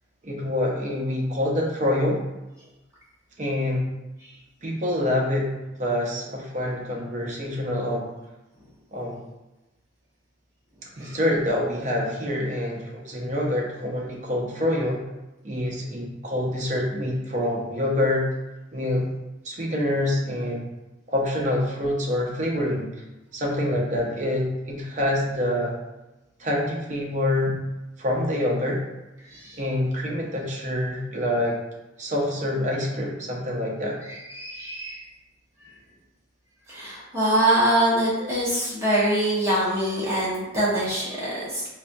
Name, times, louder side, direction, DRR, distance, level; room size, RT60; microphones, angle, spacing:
voice 1, 0.2-2.2 3.4-3.9 4.6-5.5 5.8-8.1 8.9-9.2 11.0-15.0 15.4-18.3 18.7-19.1 19.4-20.7 21.1-22.9 23.3-25.8 26.4-27.6 28.0-28.8 29.6-31.6 32.0-34.0, left 1 dB, 40° right, -2 dB, 0.7 m, -26 dB
voice 2, 29.3-29.6 34.0-35.0 36.7-41.7, right 1 dB, 15° right, -8 dB, 1.0 m, -24 dB
4.0 x 2.6 x 2.2 m, 1.0 s
head